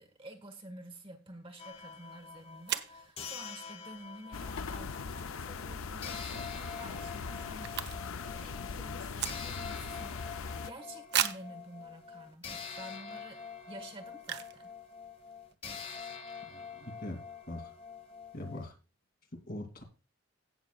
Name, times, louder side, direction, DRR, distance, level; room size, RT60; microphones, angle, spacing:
voice 1, 0.0-10.4 10.6-14.7, right 1 dB, 25° right, 6 dB, 1.5 m, -50 dB
sound 1, 1.6-5.3 6.0-18.7, left 6 dB, 25° left, 1.1 m, -46 dB
sound 2, 2.0-2.1 2.7-3.0 6.0-6.2 6.5-6.6 6.8-8.3 8.5-9.8 10.3-10.4 11.1-11.6 12.2-12.3 12.8-13.0 14.2-14.6 14.9-15.0 15.2-15.5, right 10 dB, 50° right, 0.7 m, -35 dB
sound 3, 4.3-10.7, left 5 dB, 75° left, 0.6 m, -40 dB
voice 2, 16.5-17.2 17.5-17.7 18.3-18.8 19.3-19.8, left 1 dB, 45° left, 4 dB, 2.7 m, -42 dB
17.0 x 7.0 x 2.3 m, 0.32 s
head